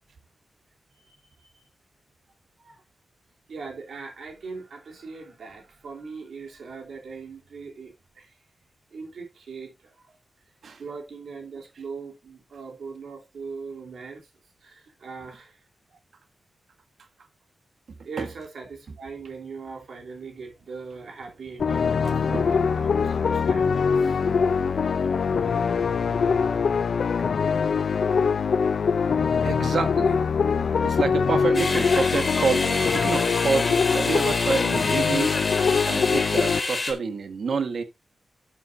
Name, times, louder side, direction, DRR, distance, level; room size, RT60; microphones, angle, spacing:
voice 1, 0.9-1.6 2.6-2.8 3.5-8.3 8.9-9.7 10.8-14.2 14.6-15.6 18.0-28.3, right 4 dB, 85° right, 3.0 m, -41 dB
voice 2, 17.9-18.3 18.9-19.0 21.6-21.7 22.2-22.6 23.1-23.2 29.4-30.2 30.6-35.3 35.8-37.8, right 5 dB, 70° right, 1.4 m, -28 dB
sound 1, 21.6-36.6, left 5 dB, 65° left, 0.4 m, -23 dB
sound 2, 31.5-36.9, left 3 dB, 35° left, 2.3 m, -28 dB
12.0 x 7.2 x 2.6 m
wide cardioid pair, 155°, 0 cm